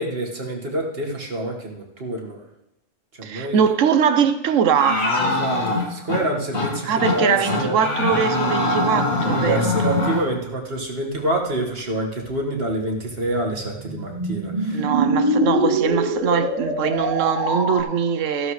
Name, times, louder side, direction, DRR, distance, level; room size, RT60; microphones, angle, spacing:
voice 1, 0.0-2.4 3.2-3.6 5.4-7.8 9.3-14.8, right 1 dB, 45° right, 1.9 m, -27 dB
voice 2, 3.2-5.1 6.8-10.0 14.7-18.5, right 7 dB, 70° right, 1.1 m, -22 dB
sound 1, 4.8-6.2 6.5-6.7 7.0-7.2 7.5-10.2, left 2 dB, 90° left, 2.1 m, -22 dB
sound 2, 12.9-17.8, right 1 dB, 30° right, 2.7 m, -24 dB
14.5 x 12.0 x 3.2 m
omnidirectional pair, 1.4 m